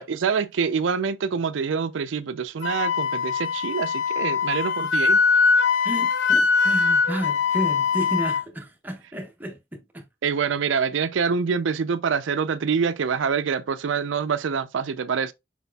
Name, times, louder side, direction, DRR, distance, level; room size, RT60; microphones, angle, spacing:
voice 1, 0.0-5.2 10.2-15.3, right 6 dB, 80° right, 0.4 m, -25 dB
Wind instrument woodwind instrument, 2.6-8.4, left 5 dB, 75° left, 0.5 m, -22 dB
voice 2, 5.8-10.1, equal, 10° right, 0.7 m, -32 dB
4.6 x 4.1 x 2.2 m
head